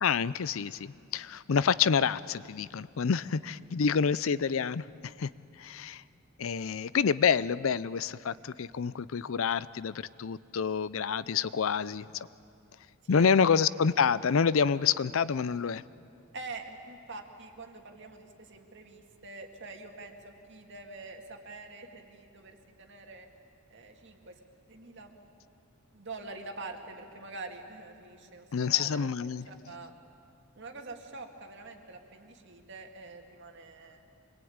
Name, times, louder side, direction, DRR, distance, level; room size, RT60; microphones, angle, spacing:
voice 1, 0.0-5.3 5.6-6.0 6.4-12.3 13.1-15.8 28.5-29.5, left 6 dB, 70° left, 18 dB, 0.5 m, -28 dB
voice 2, 16.3-23.3 23.7-24.4 24.7-25.1 25.9-29.1 29.5-29.9 30.5-34.0, right 3 dB, 55° right, 3 dB, 2.2 m, -45 dB
25.5 x 22.0 x 8.8 m, 2.7 s
head